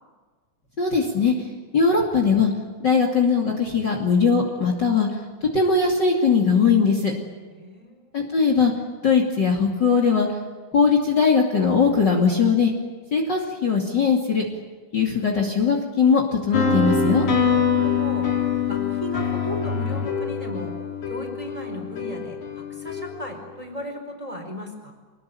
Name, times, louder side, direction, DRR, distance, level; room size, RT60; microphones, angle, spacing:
voice 1, 0.8-1.3 1.7-2.5 2.8-5.1 5.5-7.1 8.1-8.7 9.0-10.3 10.7-12.7 13.1-14.4 14.9-17.2, left 5 dB, 35° left, 2 dB, 3.0 m, -20 dB
voice 2, 7.5-8.2 17.4-18.3 18.7-20.7 21.1-24.9, equal, 10° right, 3 dB, 4.5 m, -36 dB
sound 1, 16.5-23.4, left 6 dB, 75° left, 4.5 m, -24 dB
26.0 x 20.0 x 9.1 m, 1.4 s
omnidirectional pair, 3.5 m